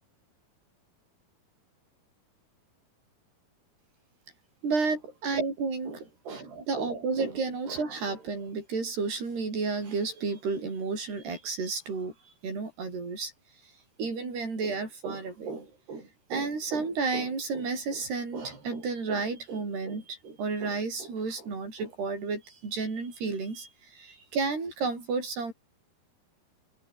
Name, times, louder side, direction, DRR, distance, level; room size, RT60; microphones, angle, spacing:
voice 1, 4.6-12.1 12.4-13.3 14.0-25.5, right 4 dB, 90° right, 10.0 m, -32 dB
omnidirectional pair, 4.5 m